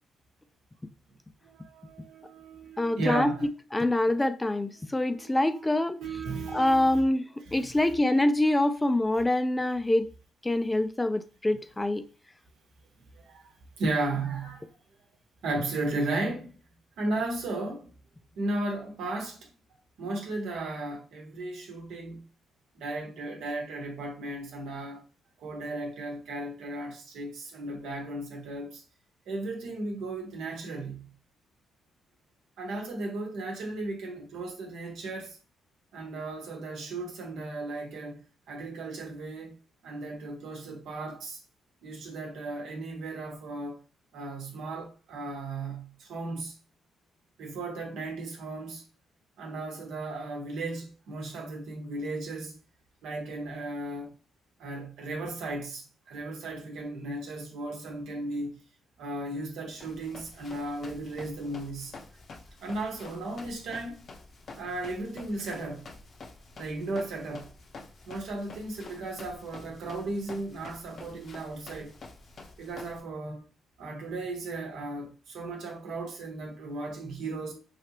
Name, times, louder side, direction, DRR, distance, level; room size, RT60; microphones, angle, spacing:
voice 1, 1.4-4.1 4.8-7.1 7.5-7.8 13.1-14.6 15.4-16.6 17.0-17.9 18.4-19.5 20.0-22.2 22.7-25.0 25.4-28.8 29.3-31.1 32.6-35.4 35.9-39.6 39.8-41.4 41.8-43.8 44.1-46.5 47.4-48.8 49.4-52.6 53.0-54.1 54.6-58.6 59.0-62.0 62.6-64.1 64.6-65.9 66.6-67.5 68.1-71.9 72.6-73.4 73.8-77.5, right 2 dB, 75° right, 1.0 m, -35 dB
voice 2, 2.8-3.3 3.7-6.0 6.5-10.1 10.4-12.1, left 1 dB, 15° left, 0.4 m, -25 dB
Run, 59.7-73.0, left 3 dB, 55° left, 0.7 m, -48 dB
3.2 x 2.8 x 2.8 m
supercardioid pair, 60°, 0 cm